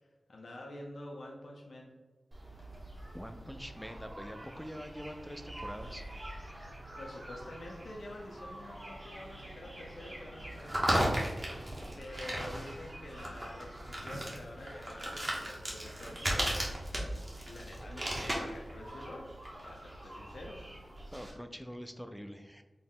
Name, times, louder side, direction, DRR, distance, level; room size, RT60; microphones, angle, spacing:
voice 1, 0.0-1.9 7.0-11.6 12.0-16.6 17.4-19.3 19.6-20.6, left 1 dB, 75° left, -1 dB, 0.5 m, -47 dB
sound 1, 2.3-21.3, right 1 dB, 40° right, 1.0 m, -38 dB
voice 2, 3.1-6.0 6.4-6.7 21.1-22.6, equal, ahead, 7 dB, 0.4 m, -45 dB
3.9 x 2.0 x 3.7 m, 1.2 s
cardioid pair, 45°, 0 cm